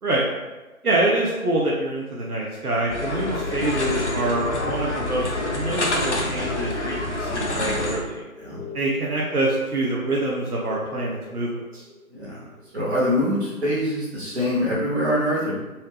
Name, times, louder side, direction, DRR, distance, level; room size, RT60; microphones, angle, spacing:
voice 1, 0.8-8.3 8.7-11.8, right 2 dB, 80° right, -4 dB, 0.9 m, -25 dB
sound 1, 2.9-8.0, left 2 dB, 50° left, 0.6 m, -27 dB
sound 2, 3.0-13.2, left 3 dB, 90° left, 0.7 m, -39 dB
voice 2, 12.1-12.4 12.7-15.5, left 1 dB, 45° right, -7 dB, 1.5 m, -24 dB
4.1 x 2.4 x 3.4 m, 1.1 s
figure-of-eight pair, 165°, 45 cm